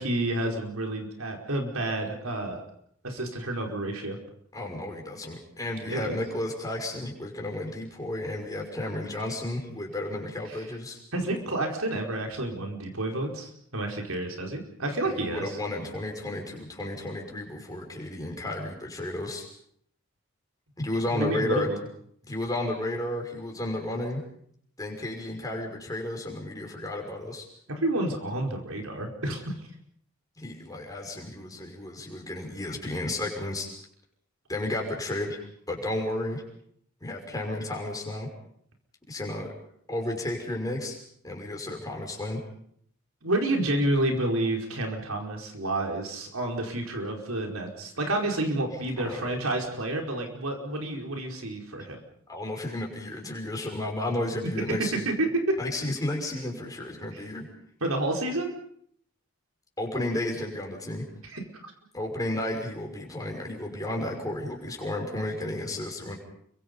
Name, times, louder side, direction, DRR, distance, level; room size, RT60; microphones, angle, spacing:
voice 1, 0.0-2.6 3.0-4.2 5.8-6.2 10.5-10.7 11.1-15.5 21.1-21.8 27.7-29.5 43.2-52.0 54.7-55.6 57.1-57.2 57.8-58.5 61.2-61.7, right 1 dB, 90° right, 2 dB, 5.0 m, -29 dB
voice 2, 4.5-11.0 15.0-19.5 20.8-21.7 22.3-24.2 24.8-27.5 30.4-33.7 34.5-35.4 35.7-36.4 37.0-38.3 39.1-39.5 39.9-41.0 41.2-42.4 49.0-49.3 52.3-55.1 55.6-57.5 59.8-61.1 61.9-66.2, left 1 dB, 15° left, 1 dB, 6.0 m, -32 dB
29.0 x 24.0 x 5.4 m, 0.68 s
head